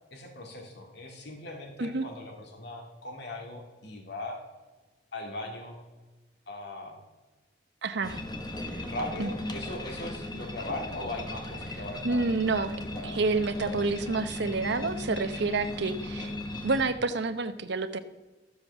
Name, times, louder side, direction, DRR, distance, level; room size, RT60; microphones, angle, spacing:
voice 1, 0.1-4.4 5.1-5.8 6.5-7.0 8.8-13.1 13.6-14.2, left 1 dB, 65° left, 2 dB, 2.2 m, -39 dB
voice 2, 7.8-8.2 8.7-8.8 9.2-9.3 12.0-12.7 13.0-16.3 16.6-18.0, right 3 dB, 65° right, 10 dB, 0.8 m, -29 dB
sound 1, 8.0-16.9, left 1 dB, 25° left, 1.3 m, -37 dB
13.0 x 7.8 x 6.8 m, 1.2 s
head